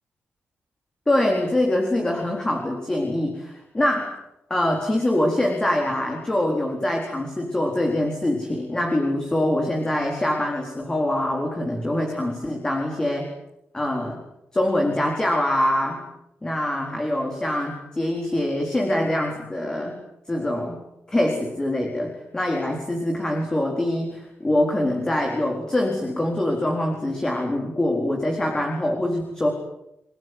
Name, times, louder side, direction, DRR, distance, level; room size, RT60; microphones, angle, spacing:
voice 1, 1.1-4.2 4.5-13.3 13.7-14.2 14.5-16.0 16.4-20.0 20.3-20.8 21.1-29.5, left 1 dB, 15° left, 1 dB, 4.2 m, -24 dB
30.0 x 18.5 x 9.6 m, 0.84 s
wide cardioid pair, 165°, 4 cm